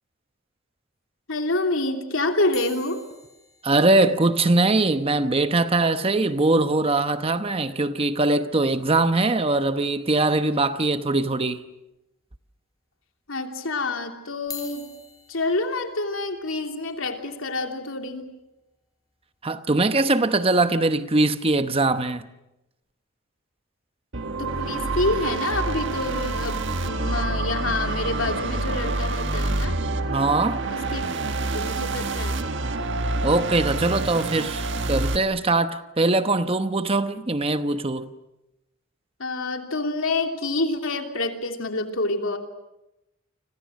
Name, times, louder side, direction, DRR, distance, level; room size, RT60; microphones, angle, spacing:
voice 1, 1.3-3.0 13.3-14.9 15.3-18.2 24.4-29.8 30.7-31.1 31.4-32.5 39.2-42.4, left 2 dB, 75° left, 3.1 m, -27 dB
sound 1, 2.5-6.9 7.2-7.3 7.4-7.6 8.0-8.1 9.5-9.6 10.3-10.8 11.3-11.4 12.2-12.3 14.3-20.4 21.0-21.2, left 5 dB, 20° left, 5.0 m, -47 dB
voice 2, 3.6-11.6 19.4-22.3 30.0-30.6 33.2-38.1, right 2 dB, 30° right, 0.9 m, -22 dB
sound 2, 24.1-35.2, right 2 dB, 60° right, 1.6 m, -27 dB
30.0 x 26.0 x 6.4 m
head